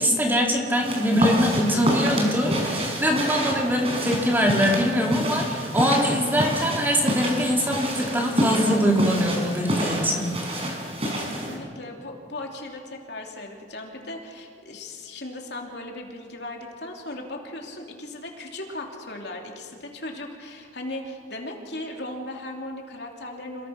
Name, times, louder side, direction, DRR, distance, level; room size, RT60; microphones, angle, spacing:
voice 1, 0.0-10.3, equal, 10° right, 0 dB, 2.8 m, -23 dB
sound 1, 0.8-11.6, equal, 30° right, 4.9 m, -28 dB
voice 2, 11.2-23.7, left 1 dB, 65° left, 1 dB, 3.1 m, -37 dB
27.5 x 21.0 x 6.0 m, 2.1 s
head